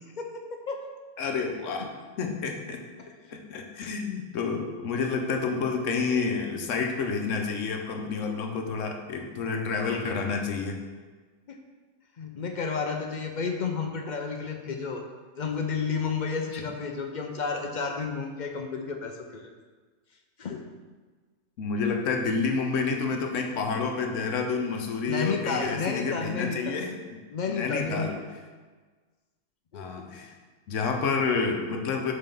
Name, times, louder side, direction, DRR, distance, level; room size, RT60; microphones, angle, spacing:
voice 1, 0.2-0.9 1.8-1.9 3.0-3.1 11.5-11.6 12.2-15.1 15.4-19.4 20.4-20.7 25.1-26.8 27.3-28.1 29.7-30.0, left 5 dB, 50° left, 3 dB, 0.6 m, -31 dB
voice 2, 1.2-1.9 2.2-2.8 3.3-10.8 16.5-16.6 21.6-27.2 27.5-28.2 29.7-30.3 30.7-32.1, left 4 dB, 80° left, 3 dB, 1.1 m, -29 dB
5.6 x 4.0 x 5.3 m, 1.4 s
omnidirectional pair, 1.3 m